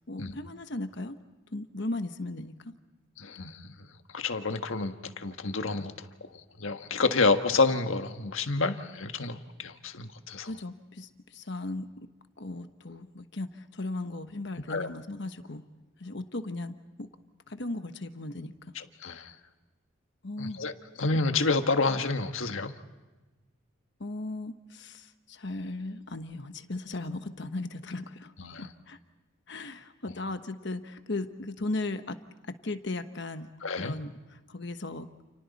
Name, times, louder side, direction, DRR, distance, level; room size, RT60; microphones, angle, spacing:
voice 1, 0.1-1.2 1.5-2.5 10.4-11.9 12.4-15.6 16.0-17.1 17.5-18.7 20.2-20.6 24.0-29.0 29.5-32.2 32.5-33.5 33.8-35.1, left 2 dB, 60° left, 8 dB, 1.2 m, -37 dB
voice 2, 3.2-3.7 4.1-6.1 6.6-10.6 14.7-14.9 18.7-19.3 20.4-20.7 21.0-22.7 28.4-28.6 30.0-30.1 33.6-33.9, left 3 dB, 75° left, 7 dB, 1.5 m, -29 dB
30.0 x 29.5 x 4.2 m, 1.2 s
head